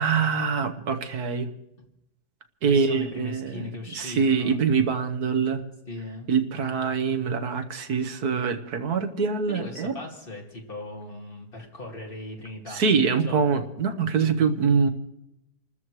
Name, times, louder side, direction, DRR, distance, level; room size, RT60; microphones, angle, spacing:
voice 1, 0.0-1.5 2.6-3.7 3.9-5.6 6.3-9.9 12.7-14.9, right 5 dB, 70° right, 7 dB, 1.6 m, -24 dB
voice 2, 2.7-4.6 5.9-6.3 9.5-13.7, left 2 dB, 35° left, -1 dB, 2.5 m, -39 dB
28.0 x 13.5 x 3.2 m, 0.87 s
omnidirectional pair, 1.7 m